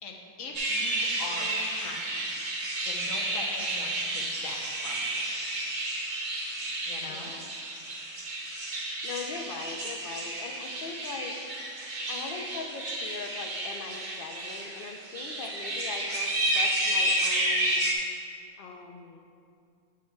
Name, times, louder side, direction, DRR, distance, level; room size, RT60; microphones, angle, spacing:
voice 1, 0.0-5.2 6.9-7.3, left 3 dB, 90° left, 1 dB, 1.2 m, -42 dB
sound 1, 0.5-17.9, right 1 dB, 40° right, 0.9 m, -31 dB
voice 2, 1.3-1.6 7.1-7.5 9.0-11.4 12.1-17.9 18.6-19.2, left 4 dB, 55° left, 3 dB, 0.7 m, -41 dB
8.4 x 7.8 x 2.3 m, 2.3 s
omnidirectional pair, 1.3 m